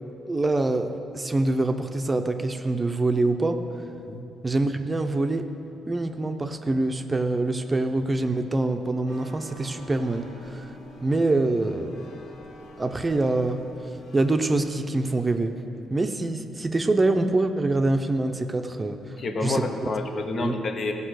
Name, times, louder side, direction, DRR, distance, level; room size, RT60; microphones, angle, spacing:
voice 1, 0.3-3.6 4.4-5.5 5.9-10.7 11.0-12.1 12.8-13.6 14.1-15.5 15.9-19.2 19.4-19.6 20.4-20.6, right 2 dB, 20° right, 7 dB, 0.7 m, -25 dB
sound 1, 9.1-14.7, left 1 dB, 80° left, 1.7 m, -47 dB
voice 2, 19.2-20.9, left 3 dB, 50° left, 4 dB, 1.0 m, -29 dB
14.5 x 5.5 x 6.5 m, 2.7 s
cardioid pair, 90°, 0 cm